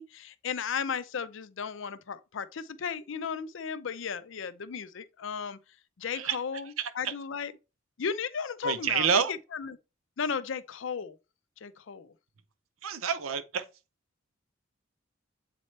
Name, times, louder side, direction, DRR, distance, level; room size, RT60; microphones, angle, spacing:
voice 1, 0.0-5.6 6.0-7.5 8.0-9.2 9.6-9.8 10.2-11.2 11.6-12.1, left 6 dB, 65° left, 0.5 m, -35 dB
voice 2, 6.8-7.1 8.6-9.3 12.8-13.6, right 7 dB, 90° right, 0.7 m, -28 dB
7.4 x 4.2 x 3.2 m
head